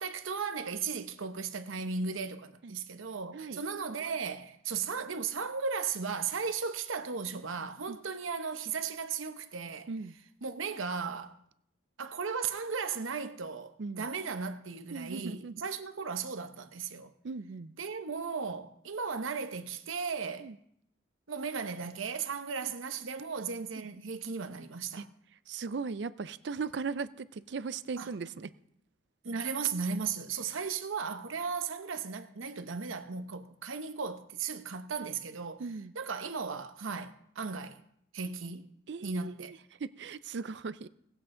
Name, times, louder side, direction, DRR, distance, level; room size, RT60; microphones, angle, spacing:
voice 1, 0.0-9.9 10.4-11.3 12.0-17.1 17.8-20.5 21.3-25.1 28.0-28.1 29.2-35.6 35.9-37.8 38.1-38.7 39.0-39.5, right 5 dB, 90° right, 0.9 m, -36 dB
voice 2, 3.3-3.6 7.9-8.0 9.9-10.1 13.8-14.1 14.9-15.6 17.2-17.7 20.4-20.6 22.6-22.7 23.8-23.9 24.9-25.1 25.5-28.5 35.6-35.9 38.9-40.9, right 4 dB, 60° right, 0.4 m, -38 dB
18.0 x 7.9 x 3.8 m
head